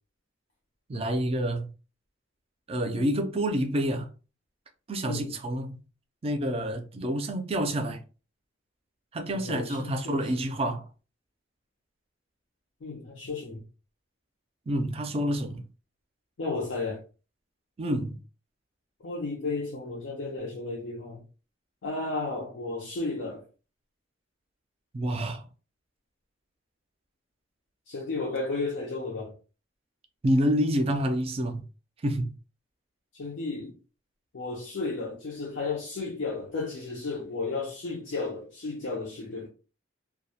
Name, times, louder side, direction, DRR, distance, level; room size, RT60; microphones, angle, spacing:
voice 1, 0.9-1.7 2.7-4.1 4.9-5.8 6.2-8.0 9.1-10.9 14.7-15.7 17.8-18.2 24.9-25.5 30.2-31.6 32.0-32.3, equal, 30° right, 0.4 m, -28 dB
voice 2, 9.3-10.2 12.8-13.6 16.4-17.0 19.0-21.2 21.8-23.4 27.9-29.3 33.1-33.7 34.3-39.5, left 3 dB, 80° left, 0.6 m, -33 dB
2.2 x 2.1 x 2.7 m
head